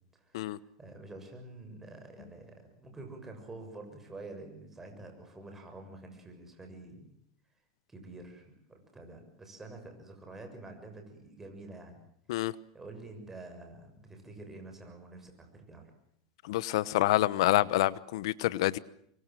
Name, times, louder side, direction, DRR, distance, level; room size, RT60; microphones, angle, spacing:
voice 1, 0.2-7.1 7.9-12.0 12.4-15.9, right 2 dB, 10° right, 6.9 m, -48 dB
voice 2, 16.4-18.8, left 16 dB, 75° left, 1.0 m, -27 dB
25.0 x 23.0 x 7.6 m
supercardioid pair, 130°, 3 cm